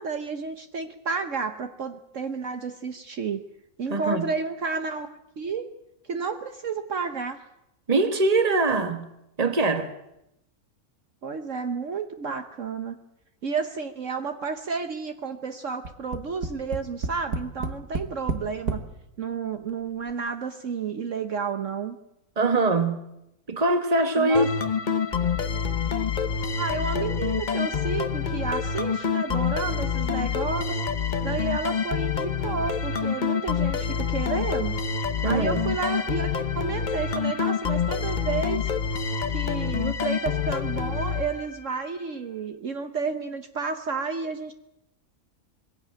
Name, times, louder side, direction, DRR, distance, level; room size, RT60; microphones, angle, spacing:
voice 1, 0.0-3.4 3.8-5.1 5.4-5.7 6.1-7.4 11.2-13.0 13.4-18.8 19.2-22.0 24.2-24.5 26.6-30.8 31.2-34.8 35.2-38.7 39.3-44.5, right 5 dB, 60° right, 1.3 m, -31 dB
voice 2, 3.9-4.3 7.9-9.1 9.4-9.9 22.4-23.0 23.5-24.5 35.2-35.7, right 3 dB, 25° right, 1.5 m, -23 dB
Tap, 15.8-18.9 19.7-19.8 20.1-20.2, right 4 dB, 90° right, 2.1 m, -30 dB
sound 1, 24.3-41.9, left 6 dB, 35° left, 1.0 m, -27 dB
21.5 x 16.5 x 9.0 m
omnidirectional pair, 1.6 m